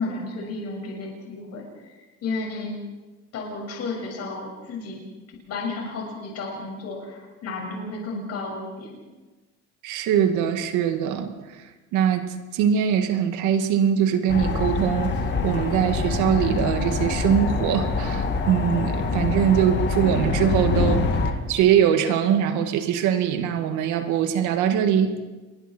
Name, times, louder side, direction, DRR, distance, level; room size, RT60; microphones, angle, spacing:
voice 1, 0.0-2.7 3.3-5.0 5.5-9.0, left 3 dB, 55° left, -1 dB, 6.7 m, -32 dB
voice 2, 9.8-15.1 15.4-21.1 21.5-25.1, right 9 dB, 80° right, 7 dB, 2.3 m, -22 dB
sound 1, 14.3-21.3, left 4 dB, 40° left, 2.6 m, -25 dB
28.0 x 22.0 x 4.6 m, 1.2 s
cardioid pair, 130°, 30 cm